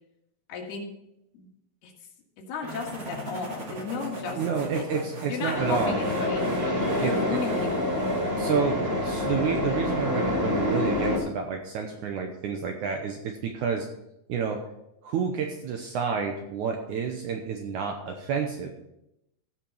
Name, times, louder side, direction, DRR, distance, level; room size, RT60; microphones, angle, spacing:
voice 1, 0.5-0.9 1.3-1.5 1.8-1.9 2.5-4.8 5.3-6.5 7.0-8.0, left 5 dB, 80° left, 0 dB, 3.7 m, -34 dB
sound 1, 2.6-8.4, right 2 dB, 35° right, 2.3 m, -40 dB
voice 2, 4.3-6.0 7.0-7.4 8.4-13.9 14.3-14.6 15.0-18.7, right 6 dB, 70° right, 4 dB, 1.9 m, -29 dB
sound 2, 5.5-11.2, left 1 dB, 20° right, 2.8 m, -27 dB
15.5 x 5.8 x 5.5 m, 0.84 s
omnidirectional pair, 4.5 m